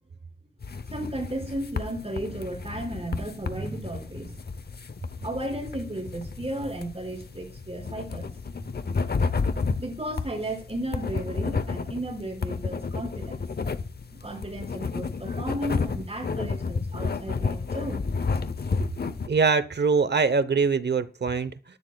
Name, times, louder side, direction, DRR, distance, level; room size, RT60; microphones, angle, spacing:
sound 1, 0.6-19.3, left 4 dB, 60° left, 0.8 m, -31 dB
voice 1, 0.9-4.4 5.2-8.3 9.7-13.4 14.1-18.1, right 1 dB, 35° right, 2 dB, 5.5 m, -34 dB
voice 2, 19.3-21.5, right 5 dB, 70° right, 14 dB, 0.9 m, -23 dB
20.0 x 11.0 x 2.3 m, 0.36 s
wide cardioid pair, 85°, 18 cm